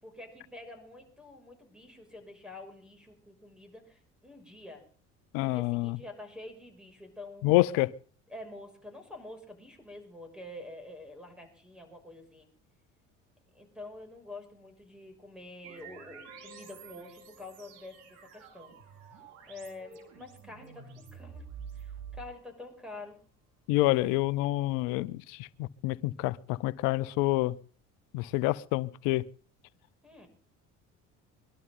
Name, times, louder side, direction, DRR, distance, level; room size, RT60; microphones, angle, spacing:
voice 1, 0.0-4.9 5.4-7.5 8.3-12.5 13.5-18.7 19.5-21.4 21.7-23.2 30.0-30.3, left 2 dB, ahead, 6.5 m, -47 dB
voice 2, 5.3-6.0 7.4-7.9 23.7-25.2 25.6-27.5 28.1-29.3, left 18 dB, 75° left, 0.7 m, -27 dB
sound 1, 15.6-22.8, right 6 dB, 80° right, 4.7 m, -48 dB
23.0 x 12.5 x 3.9 m
hypercardioid pair, 70°, 34 cm